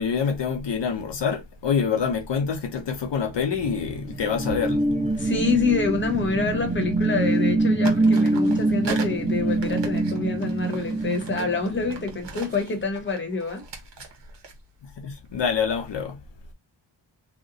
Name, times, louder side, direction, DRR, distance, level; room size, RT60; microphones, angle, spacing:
voice 1, 0.0-4.8 15.0-16.2, left 6 dB, 70° left, 0.8 m, -26 dB
sound 1, 3.3-12.4, right 2 dB, 15° right, 0.8 m, -25 dB
sound 2, 3.7-3.8 5.2-6.5 6.8-7.5 7.8-15.5, right 4 dB, 75° right, 0.9 m, -41 dB
voice 2, 5.2-13.6, left 4 dB, 25° left, 0.9 m, -27 dB
2.9 x 2.1 x 3.8 m
wide cardioid pair, 80°, 44 cm